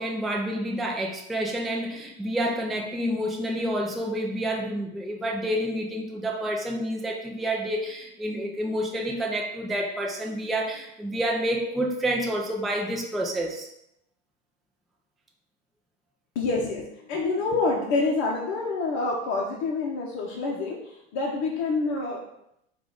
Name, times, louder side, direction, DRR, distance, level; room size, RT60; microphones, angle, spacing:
voice 1, 0.0-13.7, right 1 dB, ahead, 0 dB, 0.3 m, -29 dB
voice 2, 16.3-22.3, left 3 dB, 55° left, -2 dB, 0.8 m, -27 dB
4.6 x 2.4 x 3.8 m, 0.78 s
supercardioid pair, 115°, 32 cm